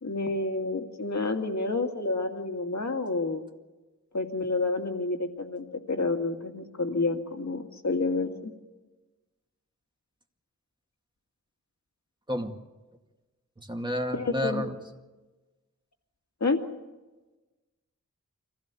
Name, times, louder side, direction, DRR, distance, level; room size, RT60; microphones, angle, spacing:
voice 1, 0.0-3.4 4.1-8.5 14.1-14.6 16.4-16.6, left 3 dB, 60° left, 4 dB, 2.3 m, -29 dB
voice 2, 13.6-14.7, equal, 15° right, 3 dB, 2.2 m, -30 dB
25.0 x 16.0 x 8.4 m, 1.2 s
wide cardioid pair, 70°, 31 cm